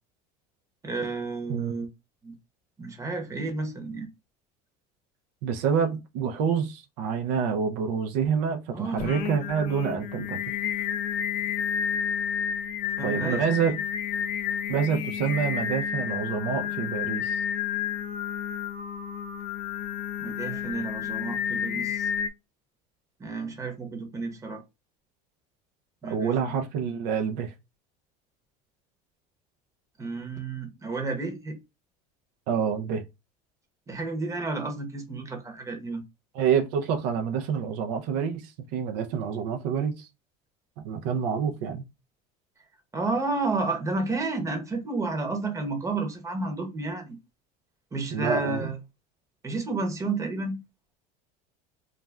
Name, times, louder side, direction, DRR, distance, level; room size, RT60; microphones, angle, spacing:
voice 1, 0.8-1.9 2.2-2.3 2.8-4.1 8.7-9.2 13.0-13.4 20.2-22.1 23.2-24.6 26.0-26.6 30.0-31.6 33.9-36.0 42.9-47.2 47.9-48.8 49.4-50.6, right 3 dB, 15° right, 0.8 m, -31 dB
voice 2, 5.4-10.4 13.0-13.8 14.7-17.4 26.1-27.5 32.5-33.0 36.3-40.1 40.8-41.8 48.1-48.7, right 7 dB, 75° right, 0.5 m, -27 dB
Singing, 9.0-22.3, left 8 dB, 50° left, 0.5 m, -31 dB
2.4 x 2.1 x 3.2 m
supercardioid pair, 115°, 19 cm